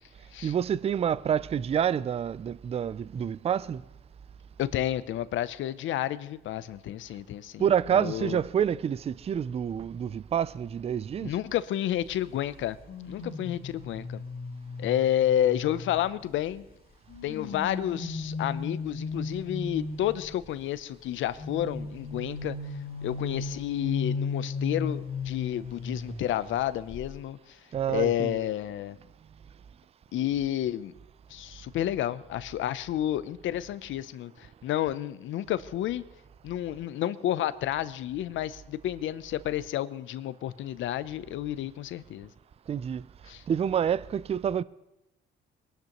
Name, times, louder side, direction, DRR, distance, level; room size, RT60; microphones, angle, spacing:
voice 1, 0.4-3.8 7.6-11.3 27.7-28.4 42.7-43.1 43.5-44.6, right 8 dB, 30° right, 0.3 m, -28 dB
voice 2, 4.6-7.7 7.9-8.4 11.2-12.8 13.0-14.2 14.8-16.7 17.2-22.6 23.0-27.6 27.9-29.0 30.1-30.9 31.3-36.0 36.4-42.3 43.3-43.4, left 12 dB, 75° left, 0.6 m, -30 dB
sound 1, 12.9-16.5 17.1-20.3 21.4-26.6 26.9-27.2, left 4 dB, 50° left, 2.1 m, -36 dB
22.0 x 12.0 x 3.0 m
cardioid pair, 90°, 20 cm